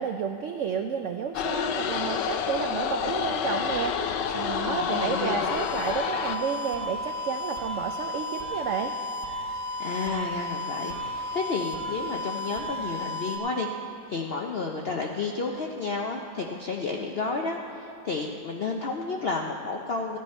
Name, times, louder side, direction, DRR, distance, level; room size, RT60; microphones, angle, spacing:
voice 1, 0.0-3.9 4.3-8.9, right 7 dB, 85° right, 5 dB, 0.6 m, -31 dB
sound 1, 1.3-6.4, left 7 dB, 85° left, 1.3 m, -28 dB
voice 2, 4.6-5.5 9.8-13.7 14.1-20.2, left 4 dB, 70° left, 1 dB, 0.5 m, -31 dB
sound 2, 5.5-13.4, left 1 dB, 40° left, 1.7 m, -34 dB
15.5 x 9.7 x 4.3 m, 2.6 s
omnidirectional pair, 1.8 m